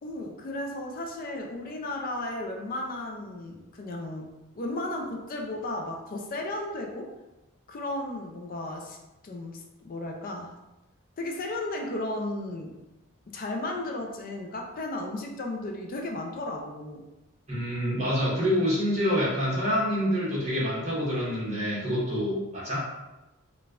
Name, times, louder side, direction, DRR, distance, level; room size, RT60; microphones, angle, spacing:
voice 1, 0.0-4.3 4.5-7.1 7.7-9.0 9.2-10.6 11.2-12.7 13.3-17.0, left 2 dB, 40° left, 2 dB, 0.4 m, -34 dB
voice 2, 17.5-22.9, equal, 30° right, -7 dB, 1.1 m, -27 dB
4.0 x 2.2 x 2.4 m, 1.0 s
head